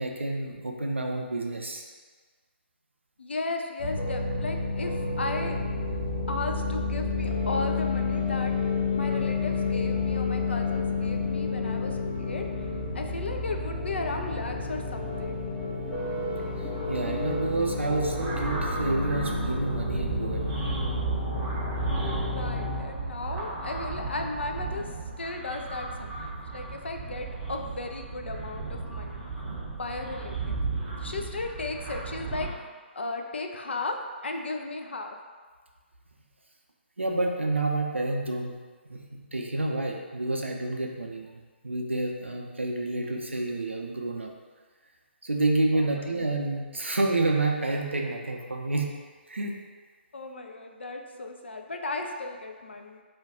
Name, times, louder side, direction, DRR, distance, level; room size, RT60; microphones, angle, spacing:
voice 1, 0.0-1.8 16.9-20.6 37.0-38.6 38.9-44.3 45.2-48.9 49.3-49.5, right 2 dB, 80° right, 1 dB, 0.5 m, -29 dB
voice 2, 3.2-5.6 6.3-8.5 8.9-15.4 22.3-29.2 29.7-30.6 31.0-35.2 45.7-46.4 50.1-53.0, left 3 dB, 70° left, 4 dB, 0.3 m, -35 dB
sound 1, 3.8-22.8, left 3 dB, 30° left, 0.6 m, -30 dB
sound 2, 18.0-32.5, right 3 dB, 20° right, 0.6 m, -34 dB
2.5 x 2.2 x 3.6 m, 1.5 s
figure-of-eight pair, 130°, 6 cm